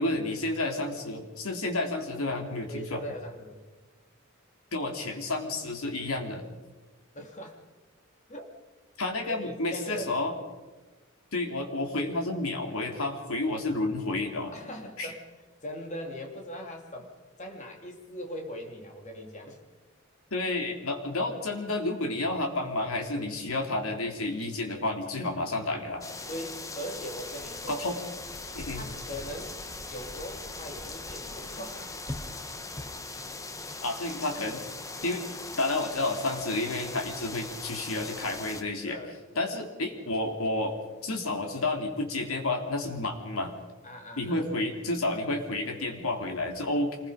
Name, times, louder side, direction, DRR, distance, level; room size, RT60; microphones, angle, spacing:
voice 1, 0.0-3.0 4.7-6.5 9.0-10.4 11.3-14.5 15.0-15.1 20.3-26.1 27.7-28.0 28.5-28.9 33.8-34.6 35.0-35.3 35.6-39.0 39.3-40.8 41.0-43.6 44.2-47.0, left 2 dB, 85° left, 3 dB, 3.1 m, -30 dB
voice 2, 2.7-3.6 7.1-7.6 8.3-8.5 9.2-10.2 14.5-15.2 15.6-17.1 17.4-19.6 26.3-27.8 28.8-29.5 29.8-31.9 38.8-39.1 43.8-44.4, equal, 35° left, 2 dB, 3.1 m, -40 dB
sound 1, 26.0-38.6, left 2 dB, 15° left, 1.1 m, -40 dB
26.0 x 20.5 x 5.1 m, 1.3 s
head